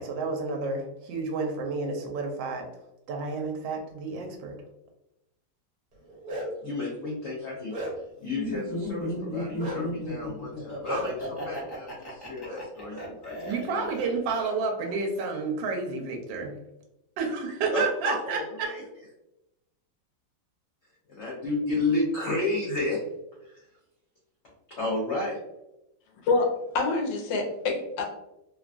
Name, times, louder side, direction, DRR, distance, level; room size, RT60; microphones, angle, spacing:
voice 1, 0.0-2.7 3.1-4.6 13.5-16.5 17.2-18.7, right 4 dB, 80° right, 2 dB, 1.3 m, -30 dB
Bark, 5.9-6.7 7.2-8.2 9.6-9.8 10.9-11.1 12.4-12.6 12.9-13.1 13.9-14.1 14.4-15.3, right 1 dB, 65° right, 1.3 m, -37 dB
voice 2, 6.6-13.9 14.4-14.5 17.7-18.8 21.1-23.0 23.4-23.6 24.7-25.4, left 2 dB, 70° left, -4 dB, 0.6 m, -32 dB
Laughter, 8.4-14.3, equal, 25° left, 0.5 m, -35 dB
voice 3, 26.2-28.0, left 3 dB, 90° left, 3 dB, 1.3 m, -26 dB
3.3 x 2.2 x 2.4 m, 0.89 s
omnidirectional pair, 2.0 m